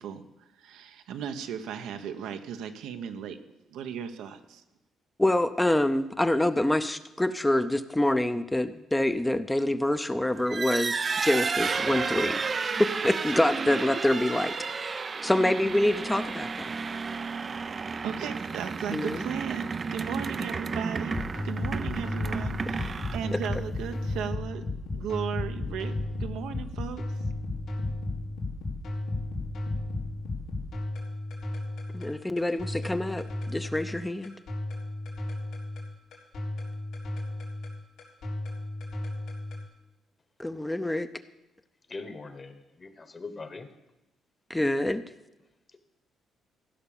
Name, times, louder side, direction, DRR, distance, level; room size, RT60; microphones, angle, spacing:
voice 1, 0.0-3.4 3.7-4.6 17.9-21.2 21.4-24.6 24.9-27.0, right 7 dB, 90° right, 7 dB, 0.8 m, -36 dB
voice 2, 5.2-12.4 12.8-16.7 18.9-19.2 31.9-34.3 40.4-41.1 44.5-45.0, left 1 dB, 10° left, 10 dB, 0.6 m, -26 dB
sound 1, 10.4-23.8, right 5 dB, 40° right, 0.4 m, -32 dB
sound 2, 21.1-39.6, left 2 dB, 80° left, 3.7 m, -34 dB
voice 3, 41.9-43.7, left 3 dB, 35° left, 10 dB, 1.3 m, -41 dB
15.5 x 5.7 x 7.1 m, 0.97 s
cardioid pair, 90°, 0 cm